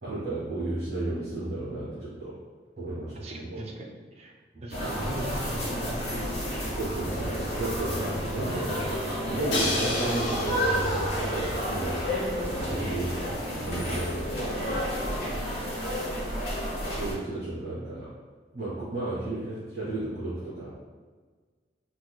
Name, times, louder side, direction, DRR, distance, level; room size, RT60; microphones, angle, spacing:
voice 1, 0.0-2.4 2.8-3.6 4.5-4.9 6.8-8.8 9.2-12.0 12.6-13.3 13.6-14.8 17.0-18.1 18.5-20.7, right 2 dB, 55° right, -12 dB, 1.5 m, -33 dB
voice 2, 3.1-4.3 4.6-6.7 12.6-12.9 13.3-13.4 13.8-13.9 15.3-15.8, right 2 dB, 35° right, 1 dB, 0.4 m, -40 dB
sound 1, 4.7-17.1, equal, 60° left, 1.0 m, -30 dB
Crash cymbal, 9.5-11.5, left 2 dB, 85° left, 0.6 m, -31 dB
4.6 x 2.2 x 2.3 m, 1.4 s
head